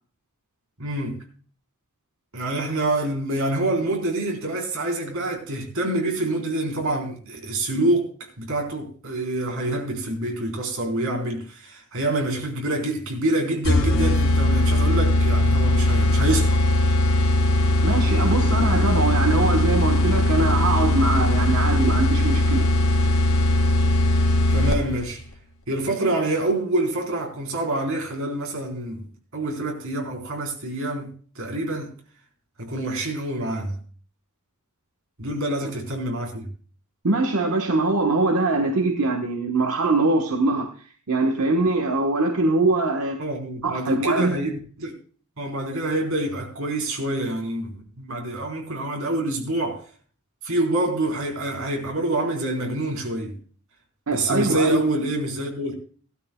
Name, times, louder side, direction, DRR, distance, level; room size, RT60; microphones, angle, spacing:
voice 1, 0.8-1.2 2.3-16.6 24.5-25.2 25.7-29.1 29.3-31.9 32.6-33.8 35.2-36.5 43.2-45.0 45.4-49.8 50.4-53.4 54.1-55.8, right 1 dB, 65° right, 4.0 m, -26 dB
sound 1, 13.6-25.0, left 1 dB, 65° left, 2.9 m, -20 dB
voice 2, 17.8-22.7 37.0-40.7 41.1-43.2 43.6-44.4 54.1-54.8, right 2 dB, 85° right, 1.2 m, -22 dB
17.0 x 12.5 x 2.3 m
head